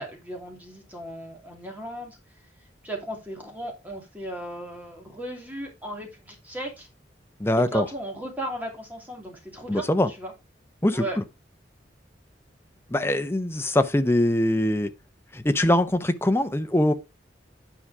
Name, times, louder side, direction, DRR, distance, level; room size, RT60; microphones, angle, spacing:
voice 1, 0.0-2.2 2.8-6.9 7.6-10.3 10.9-11.2, right 1 dB, 10° right, 2.8 m, -36 dB
voice 2, 7.4-7.9 9.7-10.1 10.8-11.2 12.9-14.9 15.3-16.9, left 1 dB, 15° left, 0.7 m, -22 dB
10.0 x 4.8 x 4.8 m
head